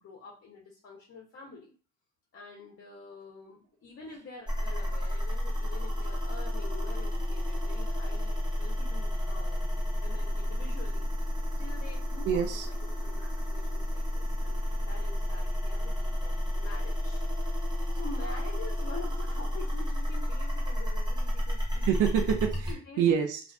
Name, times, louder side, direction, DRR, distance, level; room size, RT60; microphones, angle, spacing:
voice 1, 0.0-1.7 2.3-11.1 11.6-13.2 13.5-14.6 14.9-17.2 17.9-22.0 22.7-23.0, left 4 dB, 45° left, -1 dB, 0.7 m, -47 dB
sound 1, 4.5-22.7, equal, 15° right, 1.0 m, -31 dB
voice 2, 12.3-12.7 13.2-13.3 21.7-23.4, right 8 dB, 85° right, 4 dB, 0.5 m, -27 dB
2.4 x 2.3 x 2.3 m, 0.39 s
cardioid pair, 90°, 30 cm